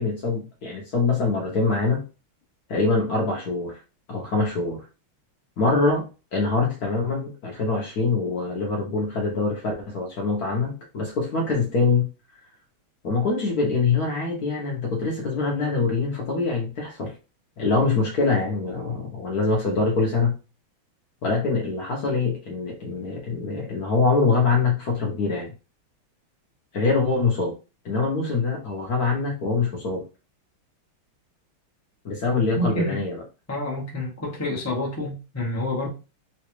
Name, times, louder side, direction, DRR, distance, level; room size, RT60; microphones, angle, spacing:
voice 1, 0.0-2.0 2.7-3.8 4.1-4.8 5.6-6.1 6.3-12.1 13.0-17.2 17.6-20.4 21.2-25.5 26.7-27.5 27.8-30.0 32.0-33.2, left 4 dB, 60° left, 1.0 m, -24 dB
voice 2, 32.3-33.0 33.5-35.9, left 1 dB, 20° left, 0.4 m, -28 dB
3.9 x 2.3 x 3.0 m
omnidirectional pair, 2.4 m